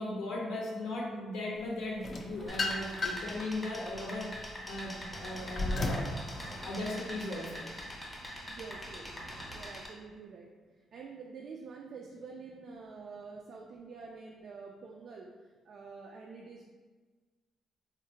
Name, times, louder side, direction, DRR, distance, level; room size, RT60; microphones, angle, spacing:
voice 1, 0.0-7.7, left 1 dB, 90° left, -3 dB, 0.6 m, -38 dB
sound 1, 2.0-3.4 3.9-6.2, left 2 dB, 45° left, 0.4 m, -34 dB
sound 2, 2.3-9.7, right 1 dB, 85° right, 0.7 m, -51 dB
sound 3, 2.5-9.9, left 1 dB, 10° left, 0.7 m, -44 dB
voice 2, 8.4-9.1 9.5-10.5 10.9-16.7, right 4 dB, 60° right, -1 dB, 0.3 m, -47 dB
3.7 x 2.1 x 2.7 m, 1.4 s
cardioid pair, 90°, 0 cm